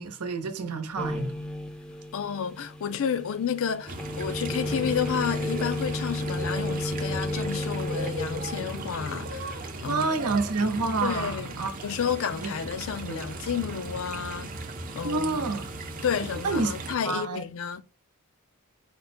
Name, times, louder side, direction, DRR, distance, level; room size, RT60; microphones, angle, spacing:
voice 1, 0.0-1.3 9.9-11.7 12.4-12.5 13.1-13.3 15.0-15.7 16.4-16.7 17.0-17.4, right 3 dB, 85° right, 0.8 m, -28 dB
sound 1, 1.0-17.3, left 1 dB, 5° left, 0.5 m, -36 dB
voice 2, 2.1-10.4 11.0-14.5 15.0-15.5 16.0-17.8, left 7 dB, 60° left, 0.4 m, -31 dB
sound 2, 3.9-17.0, right 2 dB, 40° right, 0.6 m, -37 dB
5.0 x 2.2 x 4.2 m
head